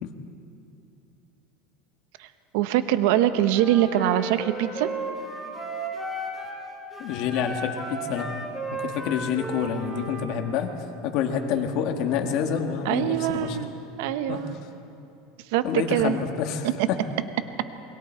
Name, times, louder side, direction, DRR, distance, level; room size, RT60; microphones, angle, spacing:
voice 1, 2.5-4.9 12.8-13.7 14.0-14.5 15.5-16.2, right 12 dB, 60° right, 11 dB, 0.9 m, -23 dB
Wind instrument woodwind instrument, 3.5-6.6 6.9-10.3, right 2 dB, 10° right, 2.8 m, -34 dB
voice 2, 7.0-8.4 8.7-10.7 11.0-13.6 14.3-14.4 15.6-17.0, left 7 dB, 45° left, 5 dB, 1.5 m, -28 dB
28.0 x 23.0 x 4.5 m, 2.7 s
supercardioid pair, 175°, 0 cm